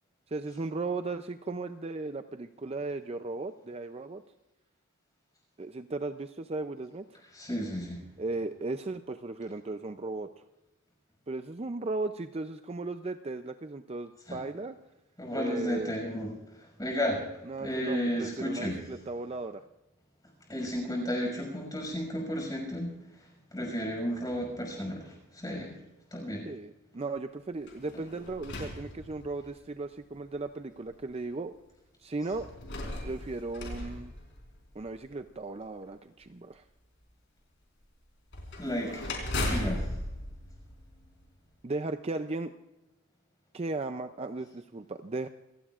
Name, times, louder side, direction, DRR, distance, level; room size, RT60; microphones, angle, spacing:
voice 1, 0.3-4.2 5.6-7.0 8.2-10.3 11.3-14.8 15.3-15.9 17.5-19.6 26.4-31.5 32.0-32.5 33.0-34.1 34.8-36.6 41.6-42.5 43.5-45.3, right 3 dB, 30° right, 9 dB, 0.5 m, -36 dB
voice 2, 7.3-8.0 14.3-14.4 15.2-16.3 16.8-17.2 17.6-18.8 20.5-22.9 23.5-25.7 26.1-26.4 38.6-39.9, equal, 20° left, 1 dB, 6.2 m, -33 dB
sound 1, 27.6-29.6 30.4-30.5 32.3-34.9 38.3-41.4, left 1 dB, 60° left, 4.4 m, -37 dB
27.0 x 17.5 x 2.5 m, 0.98 s
head